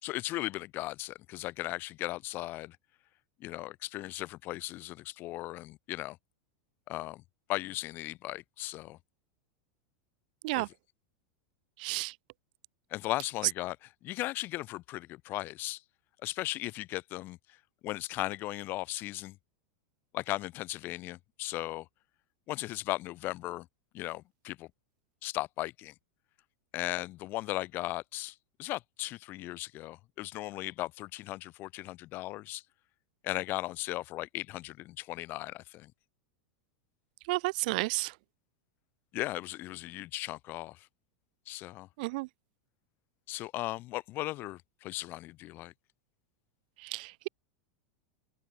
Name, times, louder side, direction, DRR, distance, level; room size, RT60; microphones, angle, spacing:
voice 1, 0.0-2.8 3.4-6.2 6.9-7.2 7.5-9.0 10.6-10.7 12.9-15.8 16.2-17.6 17.8-19.4 20.1-21.9 22.5-23.7 23.9-24.7 25.2-25.9 26.7-32.6 33.2-35.9 39.1-40.9 41.5-41.9 43.3-45.7, left 17 dB, 40° left, 3.7 m, -37 dB
voice 2, 11.8-12.1 37.3-38.1 42.0-42.3 46.8-47.3, right 24 dB, 60° right, 0.5 m, -32 dB
open air
supercardioid pair, 135°, 5 cm